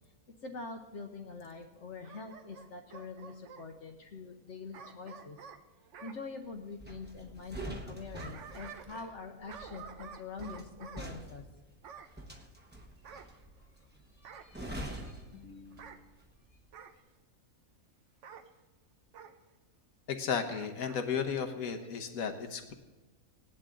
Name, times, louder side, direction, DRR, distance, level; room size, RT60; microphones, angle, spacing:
voice 1, 0.4-5.4 6.0-11.4 13.1-13.7 14.1-15.3, left 4 dB, 60° left, 3 dB, 1.1 m, -45 dB
Bark / Growling, 2.0-3.7 4.7-6.2 7.8-9.2 9.5-11.1 11.8-12.2 13.0-13.8 14.2-14.6 15.7-16.0 16.7-17.0 18.2-18.5 19.1-19.4 20.5-21.0 21.4-21.5, right 7 dB, 65° right, 1.0 m, -50 dB
sound 1, 6.8-16.1 16.4-16.7, right 1 dB, 10° right, 1.0 m, -45 dB
voice 2, 15.3-16.0 20.1-22.7, left 6 dB, 75° left, 6 dB, 1.6 m, -35 dB
18.0 x 10.5 x 3.8 m, 1.2 s
omnidirectional pair, 1.5 m